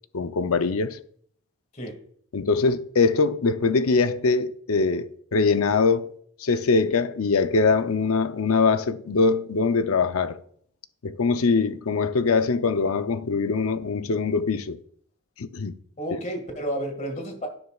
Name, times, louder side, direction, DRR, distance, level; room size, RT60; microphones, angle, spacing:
voice 1, 0.1-1.0 2.3-6.1 6.4-10.4 11.0-14.8 15.4-15.7, left 4 dB, 80° left, 0.6 m, -22 dB
voice 2, 16.0-17.5, equal, 35° left, 1.9 m, -31 dB
11.5 x 9.8 x 2.4 m
head